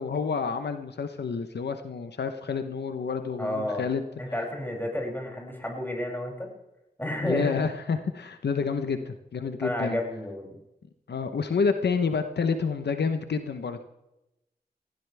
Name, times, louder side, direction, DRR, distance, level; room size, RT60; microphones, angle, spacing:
voice 1, 0.0-4.0 7.2-10.0 11.1-13.8, left 5 dB, 90° left, 8 dB, 1.0 m, -29 dB
voice 2, 3.4-3.8 4.2-6.5 7.0-7.5 9.6-10.6, left 1 dB, 10° left, -1 dB, 7.1 m, -31 dB
20.0 x 16.0 x 3.5 m, 0.91 s
cardioid pair, 45°, 17 cm